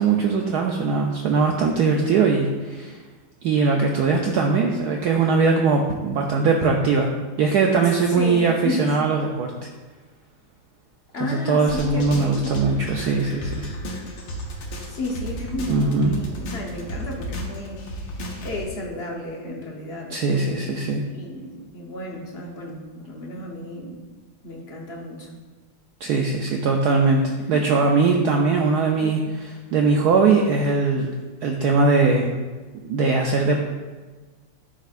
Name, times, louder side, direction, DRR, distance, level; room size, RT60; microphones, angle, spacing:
voice 1, 0.0-3.0 3.4-7.1 7.4-9.5 11.2-13.7 15.7-16.2 20.1-21.0 26.0-27.2 27.5-29.2 29.7-31.1 31.4-32.3 32.8-33.7, right 4 dB, 90° right, 1 dB, 0.8 m, -20 dB
voice 2, 7.8-9.0 11.1-12.9 14.9-18.0 18.4-20.8 21.0-24.0 24.4-25.3 27.4-27.7 29.0-29.4, left 1 dB, 50° left, -1 dB, 0.8 m, -33 dB
sound 1, 11.7-18.6, equal, 85° left, 1.9 m, -33 dB
11.5 x 4.6 x 2.5 m, 1.3 s
omnidirectional pair, 2.3 m